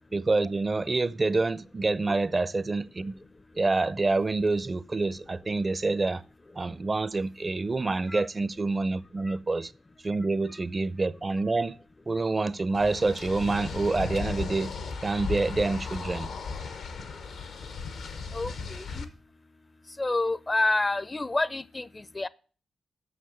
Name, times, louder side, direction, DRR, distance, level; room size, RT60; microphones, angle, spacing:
voice 1, 0.1-3.2 3.6-6.2 6.6-9.7 10.0-11.8 12.1-14.7 15.0-16.3, right 3 dB, 35° right, 0.5 m, -27 dB
sound 1, 12.7-19.0, left 5 dB, 80° left, 1.0 m, -36 dB
voice 2, 18.3-19.1 20.0-22.3, left 2 dB, 30° left, 0.5 m, -29 dB
7.9 x 6.1 x 7.7 m
supercardioid pair, 45°, 0 cm